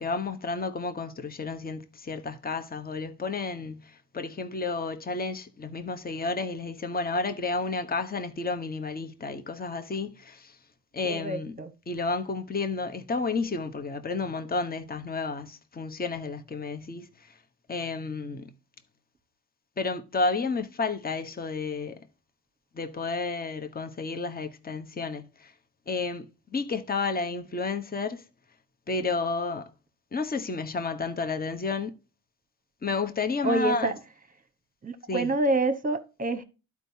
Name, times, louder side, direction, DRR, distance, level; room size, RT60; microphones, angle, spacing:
voice 1, 0.0-10.6 10.9-11.6 11.9-17.1 17.7-18.5 19.8-22.0 22.7-25.5 25.9-28.2 28.9-29.7 30.1-31.9 32.8-34.0 35.1-35.3, left 3 dB, 20° left, 1.0 m, -31 dB
voice 2, 11.0-11.7 33.4-33.9 34.8-36.4, right 2 dB, 20° right, 1.1 m, -27 dB
12.0 x 4.7 x 2.7 m
supercardioid pair, 60°, 41 cm